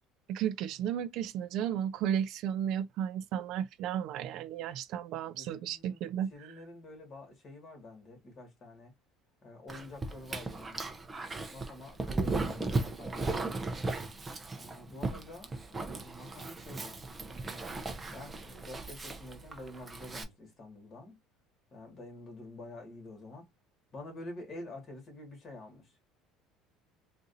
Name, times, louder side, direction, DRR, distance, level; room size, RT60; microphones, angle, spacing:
voice 1, 0.3-6.3, right 9 dB, 60° right, 0.3 m, -33 dB
voice 2, 5.4-8.9 9.4-10.8 11.5-13.7 14.5-17.0 18.1-21.2 21.7-23.5 23.9-25.9, left 2 dB, 30° left, 1.9 m, -48 dB
Dog, 9.7-20.2, right 3 dB, 15° right, 0.6 m, -37 dB
3.9 x 2.5 x 2.6 m
cardioid pair, 140°, 0 cm